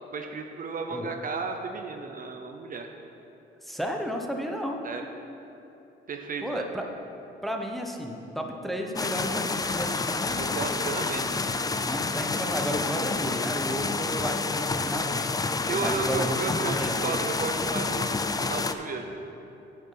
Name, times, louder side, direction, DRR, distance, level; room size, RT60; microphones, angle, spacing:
voice 1, 0.1-2.9 4.8-5.0 6.1-6.7 10.4-11.3 15.7-19.1, right 4 dB, 45° right, 5 dB, 0.7 m, -33 dB
voice 2, 3.6-4.8 6.4-6.9 7.4-10.6 11.0-11.2 11.8-15.3 15.8-17.0, equal, ahead, 2 dB, 1.0 m, -33 dB
sound 1, 8.9-18.7, left 3 dB, 20° left, 0.4 m, -29 dB
9.0 x 6.6 x 5.7 m, 2.9 s
cardioid pair, 90°, 20 cm